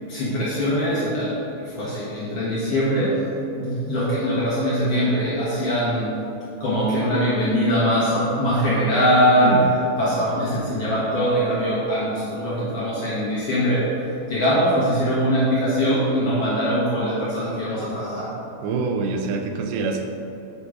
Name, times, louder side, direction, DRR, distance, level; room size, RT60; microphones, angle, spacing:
voice 1, 0.1-3.2 3.6-6.1 6.6-9.6 10.0-13.9 14.3-18.3, equal, 60° left, -9 dB, 1.6 m, -22 dB
voice 2, 18.6-20.0, right 4 dB, 90° right, 4 dB, 2.6 m, -25 dB
8.5 x 3.8 x 4.8 m, 2.8 s
omnidirectional pair, 4.5 m